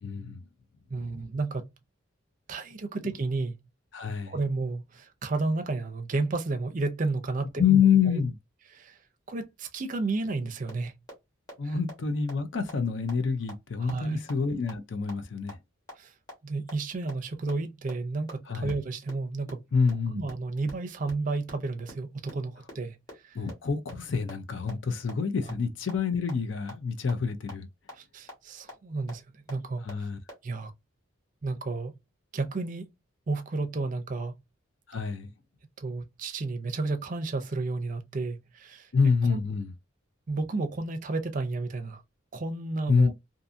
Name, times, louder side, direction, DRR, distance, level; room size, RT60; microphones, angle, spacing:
voice 1, 0.0-0.4 3.9-4.3 7.6-8.3 11.6-15.5 18.5-18.7 19.7-20.2 23.3-27.7 29.8-30.2 34.9-35.3 38.9-39.7 42.9-43.1, left 6 dB, 65° left, 0.5 m, -27 dB
voice 2, 0.9-1.7 2.5-3.6 4.3-7.6 8.1-8.2 8.7-9.0 9.3-10.9 11.6-11.8 13.8-14.2 16.0-16.1 16.4-19.6 20.1-23.0 23.2-23.4 25.5-25.6 27.9-29.2 29.5-29.8 30.4-30.7 31.4-31.9 32.3-32.9 33.3-34.4 35.8-38.9 39.3-39.4 40.3-42.0 42.3-43.1, right 3 dB, 40° right, 0.5 m, -32 dB
sound 1, 10.7-10.8 11.1-11.2 11.5-11.6 11.9-12.0 12.3-12.4 12.7-12.8 13.1-13.2 13.5-13.6 13.9-14.0 14.3-14.4 14.7-14.8 15.1-15.2 15.5-15.6 15.9-16.0 16.3-16.4 16.7-16.8 17.1-17.2 17.5-17.6 17.9-18.0 18.3-18.4 18.7-18.8 19.1-19.2 19.5-19.6 19.9-20.0 20.3-20.4 20.7-20.8 21.1-21.2 21.5-21.6 21.9-22.0 22.3-22.4 22.7-22.8 23.1-23.2 23.5-23.6 23.9-24.0 24.3-24.4 24.7-24.8 25.1-25.2 25.5-25.6 25.9-26.0 26.3-26.4 26.7-26.8 27.1-27.2 27.5-27.6 27.9-28.0 28.3-28.4 28.7-28.8 29.1-29.2 29.5-29.6 29.9-30.0 30.3-30.4, left 1 dB, 20° left, 1.1 m, -41 dB
2.6 x 2.5 x 2.4 m
head